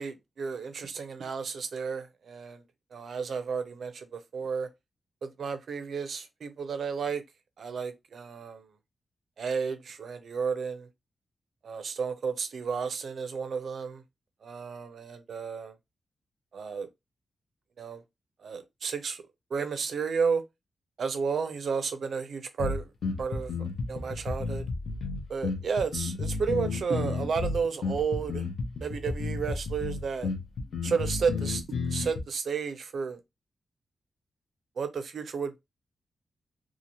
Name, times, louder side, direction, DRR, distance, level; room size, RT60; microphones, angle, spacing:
voice 1, 0.0-2.6 2.9-4.7 5.2-7.2 7.6-8.7 9.4-10.9 11.6-14.0 14.4-15.8 16.5-16.9 17.8-18.0 18.4-19.2 19.5-20.4 21.0-22.9 23.2-24.7 25.3-28.5 28.8-30.3 30.8-31.6 31.9-33.2 34.8-35.6, right 5 dB, 70° right, 0.4 m, -32 dB
sound 1, 22.6-32.2, left 4 dB, 80° left, 0.7 m, -32 dB
2.8 x 2.4 x 2.7 m
wide cardioid pair, 140°, 0 cm